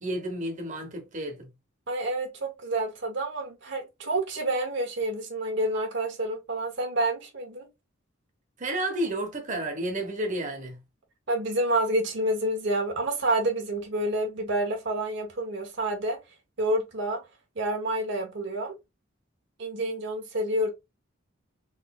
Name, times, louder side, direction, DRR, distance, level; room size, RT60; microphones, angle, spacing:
voice 1, 0.0-1.5 8.6-10.8, right 1 dB, 40° right, 1.0 m, -31 dB
voice 2, 1.9-7.7 11.3-16.2 16.6-17.2 17.6-18.8 19.6-20.7, right 1 dB, 65° right, 0.9 m, -28 dB
4.0 x 3.1 x 2.3 m
head